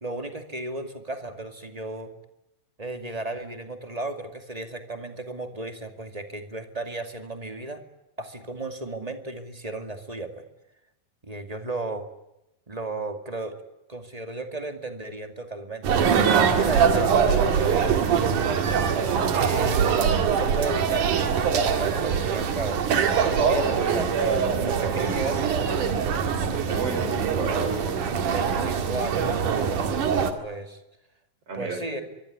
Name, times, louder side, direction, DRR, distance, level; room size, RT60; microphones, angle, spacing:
voice 1, 0.0-2.1 2.8-7.8 8.2-10.4 11.2-12.1 12.7-13.6 13.9-16.2 16.5-18.0 19.3-22.8 23.3-25.9 28.3-30.8 31.5-32.0, right 2 dB, 15° right, 7 dB, 1.7 m, -34 dB
sound 1, 15.8-30.3, right 7 dB, 65° right, 3.5 m, -23 dB
Cat, 16.3-21.9, left 1 dB, 20° left, 7.1 m, -45 dB
voice 2, 26.7-27.9 31.5-32.0, right 4 dB, 45° right, 6 dB, 6.5 m, -33 dB
24.0 x 23.5 x 9.5 m, 0.90 s
omnidirectional pair, 3.9 m